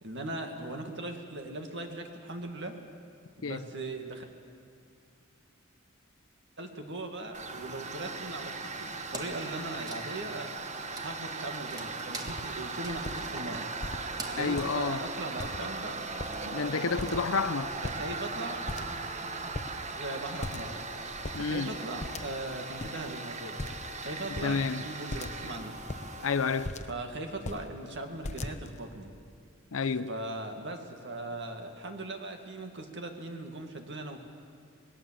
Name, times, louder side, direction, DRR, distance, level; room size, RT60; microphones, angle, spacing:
voice 1, 0.0-2.7 3.4-4.2 6.6-10.5 11.0-13.7 14.3-16.0 17.8-19.0 19.9-20.8 21.3-23.6 24.0-25.7 26.9-29.1 30.1-34.2, right 2 dB, 60° right, 2.1 m, -39 dB
Tools, 7.3-26.7, right 3 dB, 35° right, 1.2 m, -38 dB
Wood, 9.1-15.8, right 2 dB, 20° right, 1.7 m, -46 dB
sound 1, 11.9-12.0 12.3-12.5 12.9-13.2 13.8-14.0 14.5-14.9 15.4-15.8 16.1-16.6 17.0-17.4 17.7-18.4 18.7-19.2 19.5-19.7 20.4-20.8 21.1-21.4 22.0-22.5 22.8-22.9 23.6-23.9 24.3-24.6 25.1-25.4 25.8-27.0 27.3-27.7 28.2-28.8, left 2 dB, 35° left, 0.8 m, -39 dB
voice 2, 14.4-15.0 16.5-17.7 21.3-21.7 24.4-24.8 26.2-26.7 29.7-30.1, left 5 dB, 80° left, 0.7 m, -30 dB
26.5 x 19.5 x 7.6 m
head